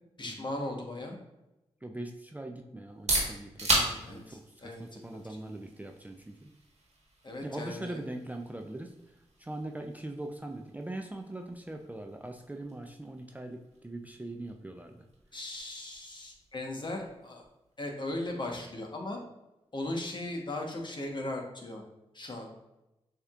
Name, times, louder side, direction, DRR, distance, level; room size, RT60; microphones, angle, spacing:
voice 1, 0.2-1.2 3.7-5.0 7.2-8.0 15.3-17.4 17.8-19.2 19.7-21.8 22.1-22.5, left 1 dB, 40° left, 1 dB, 1.1 m, -38 dB
voice 2, 1.8-6.5 7.4-15.0, right 1 dB, 15° right, 3 dB, 0.4 m, -41 dB
sound 1, 2.8-18.4, right 2 dB, 70° right, 1.5 m, -39 dB
6.7 x 2.9 x 2.4 m, 0.94 s
cardioid pair, 45°, 12 cm